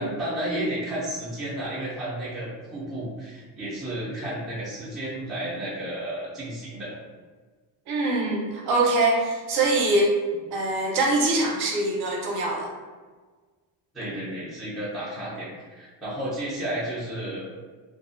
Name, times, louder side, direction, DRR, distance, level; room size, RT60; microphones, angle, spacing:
voice 1, 0.0-6.9 13.9-17.4, right 1 dB, ahead, -9 dB, 0.4 m, -32 dB
voice 2, 7.9-10.1 10.5-12.7, right 2 dB, 55° right, -1 dB, 0.6 m, -23 dB
2.5 x 2.3 x 2.4 m, 1.4 s
cardioid pair, 165°, 46 cm